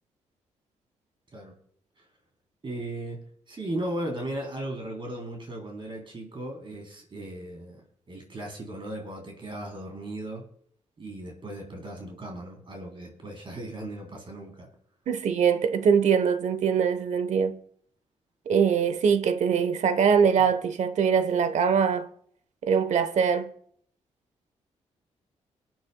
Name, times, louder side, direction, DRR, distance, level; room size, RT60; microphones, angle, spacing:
voice 1, 2.6-3.2 3.5-10.4 11.0-14.7, right 1 dB, 40° right, 3.6 m, -37 dB
voice 2, 15.1-17.5 18.5-22.1 22.6-23.5, right 6 dB, 65° right, 1.0 m, -23 dB
23.5 x 9.3 x 2.3 m
cardioid pair, 65°, 13 cm